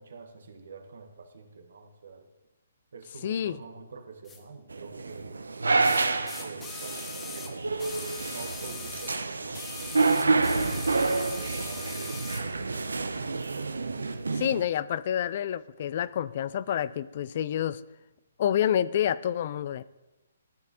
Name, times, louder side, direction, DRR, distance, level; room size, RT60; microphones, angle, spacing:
voice 1, 0.0-2.3 2.9-7.9 8.3-9.6 10.1-13.2 13.8-14.2, right 4 dB, 70° right, 6 dB, 1.3 m, -46 dB
voice 2, 3.2-3.6 14.4-17.8 18.4-19.8, left 10 dB, 50° left, 18 dB, 0.3 m, -28 dB
sound 1, 4.3-4.4 5.8-9.2 9.5-12.5 13.4-13.5, left 5 dB, 15° left, 0.9 m, -41 dB
sound 2, 4.7-14.6, right 3 dB, 90° right, 0.6 m, -28 dB
14.0 x 7.4 x 2.9 m, 1.1 s
hypercardioid pair, 145°, 0 cm